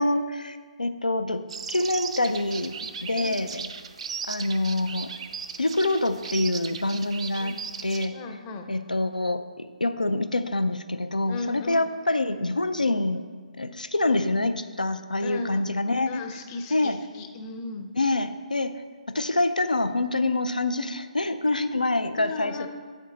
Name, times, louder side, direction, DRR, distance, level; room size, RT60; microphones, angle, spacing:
voice 1, 0.0-1.4 1.7-2.7 3.0-3.7 4.3-5.1 5.6-7.6 7.8-8.2 8.7-13.2 13.6-16.2 16.7-17.0 17.9-18.8 19.1-22.7, left 2 dB, 85° left, 10 dB, 0.4 m, -26 dB
sound 1, 1.5-8.1, right 6 dB, 50° right, 0.4 m, -37 dB
voice 2, 8.1-8.7 11.3-11.9 15.2-15.6 16.1-17.9 22.1-22.7, left 3 dB, 25° left, 4 dB, 0.6 m, -36 dB
8.3 x 4.5 x 3.8 m, 1.6 s
figure-of-eight pair, 140°, 4 cm